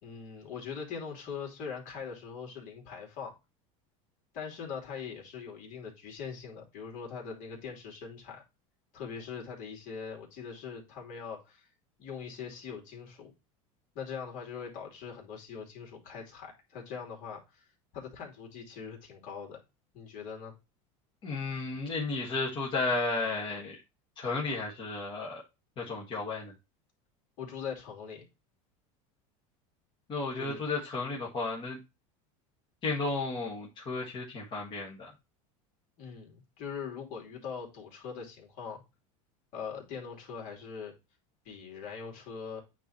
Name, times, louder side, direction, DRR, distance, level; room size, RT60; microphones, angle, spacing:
voice 1, 0.0-3.3 4.3-8.4 8.9-11.7 12.0-13.3 13.9-19.6 19.9-20.5 27.4-28.2 30.4-30.6 36.0-38.8 39.5-40.9 41.4-42.6, left 6 dB, 50° left, 3.0 m, -42 dB
voice 2, 21.2-23.8 24.2-25.4 25.8-26.5 30.1-31.8 32.8-35.1, left 3 dB, 30° left, 1.6 m, -33 dB
8.9 x 3.1 x 4.1 m
supercardioid pair, 140°, 17 cm